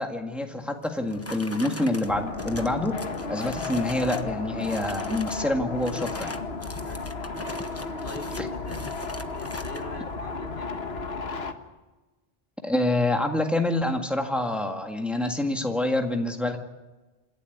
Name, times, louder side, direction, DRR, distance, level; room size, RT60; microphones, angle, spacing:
voice 1, 0.0-2.9 3.3-6.4 8.4-8.5 12.6-16.6, left 1 dB, ahead, 3 dB, 1.8 m, -27 dB
sound 1, 0.8-4.3 4.6-5.5 5.8-9.9, left 2 dB, 15° left, 0.9 m, -41 dB
sound 2, 2.1-11.5, left 3 dB, 75° left, 1.6 m, -34 dB
voice 2, 8.0-10.9, left 4 dB, 55° left, 4 dB, 2.2 m, -41 dB
27.0 x 11.5 x 9.3 m, 1.2 s
omnidirectional pair, 1.1 m